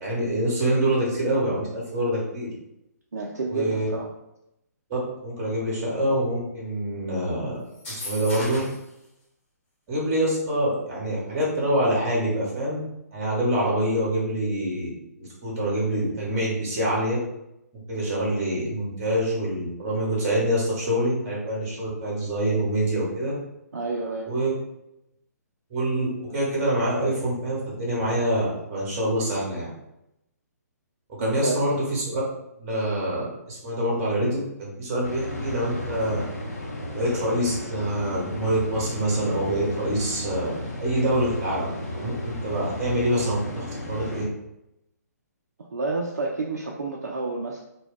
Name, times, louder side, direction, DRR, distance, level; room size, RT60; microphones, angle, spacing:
voice 1, 0.0-2.5 3.5-3.9 4.9-7.6 7.9-8.6 9.9-12.8 13.1-14.9 15.2-17.2 17.7-23.3 24.3-24.5 25.7-29.7 31.1-32.2 32.6-36.2 36.9-44.3, right 1 dB, 25° right, -4 dB, 0.9 m, -26 dB
voice 2, 3.1-4.1 23.7-24.3 31.2-31.6 45.7-47.6, right 3 dB, 65° right, -2 dB, 0.4 m, -29 dB
sound 1, 7.7-8.9, left 1 dB, 45° left, 1.2 m, -35 dB
sound 2, 35.0-44.2, left 1 dB, 60° left, 0.7 m, -34 dB
2.2 x 2.2 x 3.5 m, 0.85 s
figure-of-eight pair, 130°, 9 cm